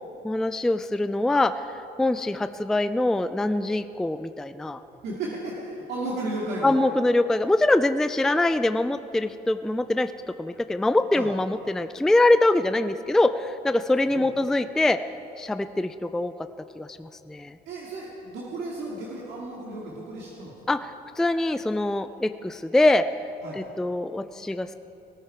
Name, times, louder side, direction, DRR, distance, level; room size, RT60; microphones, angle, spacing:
voice 1, 0.2-1.7 2.0-4.8 6.6-10.1 10.4-15.0 15.4-16.3 16.8-17.5 20.7-23.0 23.6-24.7, left 2 dB, 5° left, 11 dB, 0.3 m, -23 dB
voice 2, 5.0-6.8 11.1-11.3 14.1-14.3 17.7-20.5 23.4-23.6, right 2 dB, 80° right, -5 dB, 2.4 m, -34 dB
17.5 x 13.5 x 4.5 m, 2.9 s
cardioid pair, 110°, 17 cm